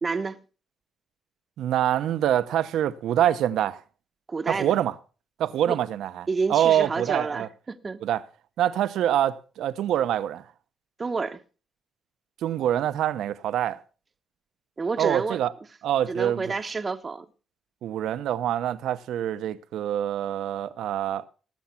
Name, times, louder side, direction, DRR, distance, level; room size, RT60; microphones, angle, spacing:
voice 1, 0.0-0.4 4.3-4.8 5.7-5.8 6.3-8.0 11.0-11.4 14.8-15.4 16.1-17.3, right 4 dB, 30° right, 0.9 m, -29 dB
voice 2, 1.6-3.8 4.5-4.9 5.4-7.5 8.0-8.2 8.6-10.5 12.4-13.8 15.0-15.5 15.8-16.5 17.8-21.2, right 11 dB, 80° right, 0.8 m, -25 dB
18.0 x 7.2 x 5.8 m
cardioid pair, 90°, 0 cm